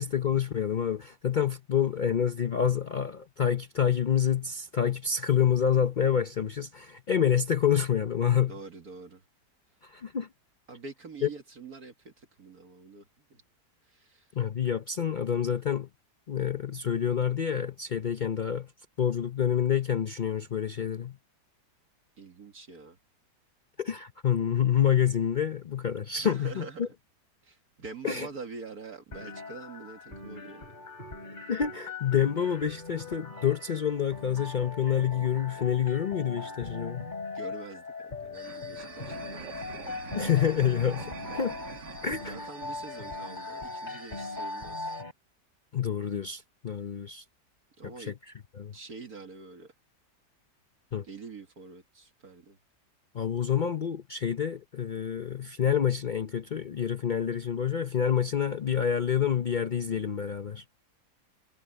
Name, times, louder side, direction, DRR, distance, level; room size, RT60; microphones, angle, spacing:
voice 1, 0.0-8.5 9.8-10.3 11.2-11.3 14.4-15.9 16.3-18.7 19.0-21.2 23.8-26.9 28.0-28.3 31.5-37.1 40.1-41.6 42.0-42.4 45.7-47.2 48.0-48.1 48.5-48.7 50.9-51.0 53.1-60.6, left 8 dB, 85° left, 0.4 m, -27 dB
voice 2, 8.5-9.2 10.7-13.4 13.9-14.3 22.2-23.0 26.1-26.9 27.4-30.7 37.3-40.0 42.2-44.9 47.8-48.1 48.7-49.7 51.0-52.6, right 4 dB, 60° right, 2.2 m, -45 dB
sound 1, 29.1-45.1, left 3 dB, 25° left, 3.6 m, -40 dB
sound 2, 38.3-45.0, right 5 dB, 85° right, 2.7 m, -45 dB
omnidirectional pair, 1.8 m